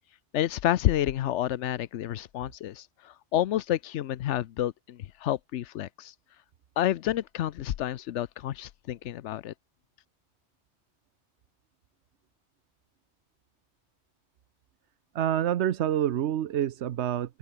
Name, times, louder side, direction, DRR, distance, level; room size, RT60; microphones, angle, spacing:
voice 1, 0.3-6.1 6.8-9.5, left 12 dB, 90° left, 1.0 m, -29 dB
voice 2, 15.1-17.4, right 11 dB, 75° right, 1.0 m, -27 dB
open air
omnidirectional pair, 1.2 m